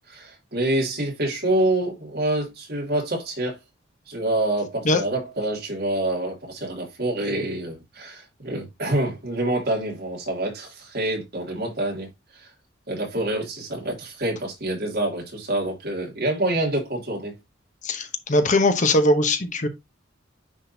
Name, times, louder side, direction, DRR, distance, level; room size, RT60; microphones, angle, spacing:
voice 1, 0.1-3.6 4.1-12.5 12.9-17.4, right 1 dB, 50° right, 2.8 m, -27 dB
voice 2, 17.8-19.7, left 2 dB, 40° left, 0.9 m, -20 dB
9.8 x 3.8 x 2.8 m
head